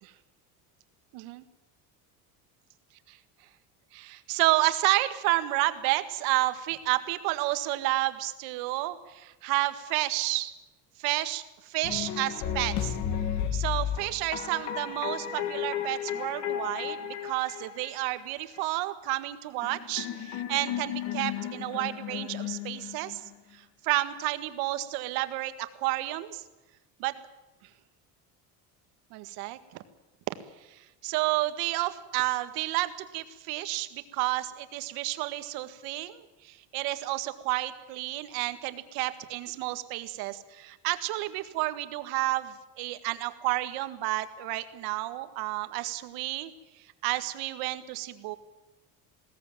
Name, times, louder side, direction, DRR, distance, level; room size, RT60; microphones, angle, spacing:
voice 1, 1.1-1.4 3.1-3.2 3.9-10.5 11.0-13.0 13.5-23.2 23.8-26.4 27.0-27.1 29.1-29.8 30.7-46.5 47.0-48.4, right 18 dB, 75° right, 11 dB, 1.8 m, -31 dB
sound 1, 11.8-18.2 19.6-23.3, left 9 dB, 50° left, 1.9 m, -33 dB
21.0 x 17.5 x 9.2 m, 1.1 s
cardioid pair, 170°, 37 cm